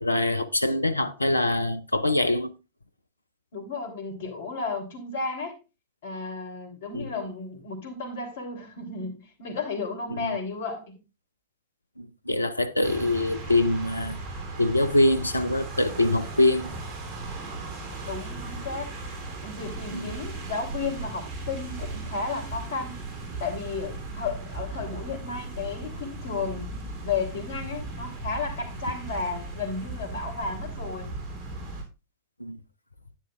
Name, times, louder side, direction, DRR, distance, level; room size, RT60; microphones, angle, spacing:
voice 1, 0.0-2.5 6.9-7.1 10.1-10.3 12.0-14.2 14.6-16.7 19.9-20.1 32.4-32.6, left 1 dB, 85° left, 0.6 m, -24 dB
voice 2, 3.5-5.6 6.0-11.0 18.0-19.0 19.4-23.0 23.4-26.7 27.0-31.1, left 4 dB, 60° left, 3.3 m, -33 dB
sound 1, 12.8-31.8, right 2 dB, 35° right, 3.4 m, -37 dB
11.5 x 9.5 x 2.5 m
figure-of-eight pair, 90°, 0 cm